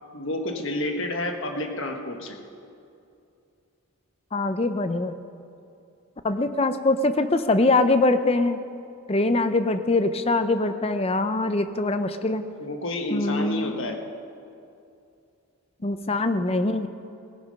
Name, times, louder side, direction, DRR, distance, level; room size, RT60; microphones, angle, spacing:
voice 1, 0.1-2.4 12.6-14.0, left 1 dB, 60° left, 3 dB, 1.4 m, -29 dB
voice 2, 4.3-5.2 6.2-8.6 9.1-12.4 13.1-13.7 15.8-16.9, left 2 dB, 25° left, 10 dB, 0.6 m, -23 dB
18.0 x 11.0 x 5.3 m, 2.6 s
head